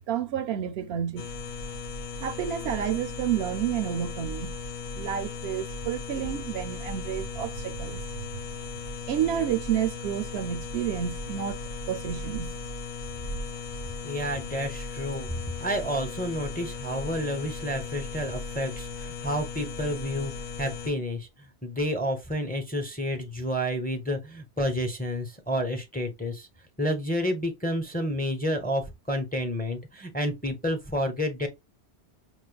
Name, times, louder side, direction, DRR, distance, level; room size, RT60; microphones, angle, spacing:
voice 1, 0.1-1.3 2.2-4.5 4.9-8.3 9.1-11.6 11.9-12.5, right 9 dB, 70° right, 0.8 m, -30 dB
sound 1, 1.2-20.9, left 4 dB, 55° left, 0.6 m, -37 dB
voice 2, 14.0-15.3 15.6-20.3 20.6-26.5 26.8-31.5, equal, 10° left, 0.6 m, -30 dB
5.3 x 3.2 x 2.2 m
omnidirectional pair, 1.1 m